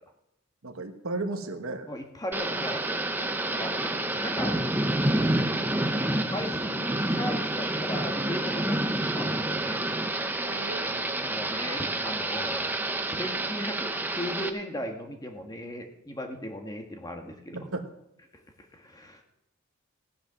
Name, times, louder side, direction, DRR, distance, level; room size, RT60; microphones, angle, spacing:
voice 1, 0.6-1.9 10.4-11.2 17.5-17.8, right 2 dB, 75° right, 6 dB, 1.3 m, -35 dB
voice 2, 1.9-2.9 3.6-3.9 4.2-4.6 6.2-9.8 11.2-12.7 13.1-17.6 18.7-19.2, equal, 20° left, 3 dB, 1.6 m, -37 dB
Thunder / Rain, 2.3-14.5, right 1 dB, 10° right, 0.8 m, -28 dB
17.0 x 7.9 x 6.3 m, 0.88 s
head